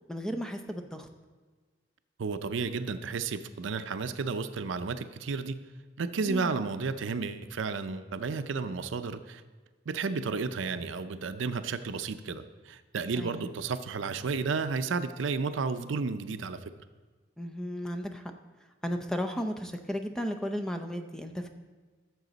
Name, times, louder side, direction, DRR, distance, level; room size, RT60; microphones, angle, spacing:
voice 1, 0.1-1.1 6.3-6.5 13.1-13.5 17.4-18.3 18.8-21.5, equal, 5° left, 5 dB, 0.5 m, -34 dB
voice 2, 2.2-5.6 6.0-9.4 9.9-16.6, right 4 dB, 80° right, 11 dB, 0.5 m, -32 dB
14.0 x 6.7 x 4.0 m, 1.4 s
head